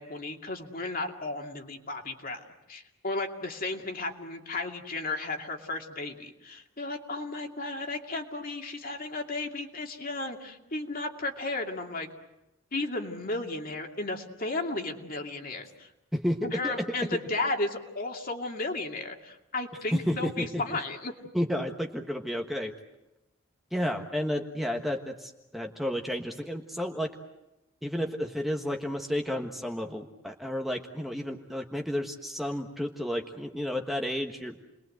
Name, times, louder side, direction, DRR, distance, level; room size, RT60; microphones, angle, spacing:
voice 1, 0.0-12.1 12.7-15.9 16.4-21.1, left 2 dB, 45° left, 3 dB, 2.6 m, -34 dB
voice 2, 16.1-16.8 19.9-20.6 21.3-22.7 23.7-27.1 27.8-34.5, equal, ahead, 3 dB, 1.3 m, -31 dB
29.5 x 21.5 x 8.0 m, 0.95 s
head